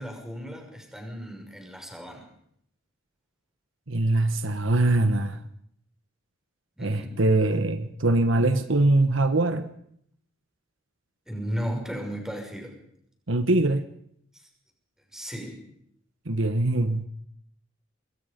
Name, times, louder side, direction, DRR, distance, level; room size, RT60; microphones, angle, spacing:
voice 1, 0.0-2.3 6.8-7.2 11.3-12.8 14.3-14.5 15.1-15.6, equal, 5° right, 1 dB, 6.2 m, -35 dB
voice 2, 3.9-5.4 6.8-9.7 13.3-13.9 16.3-17.1, right 2 dB, 70° right, 10 dB, 1.4 m, -23 dB
26.5 x 22.0 x 5.4 m, 0.69 s
head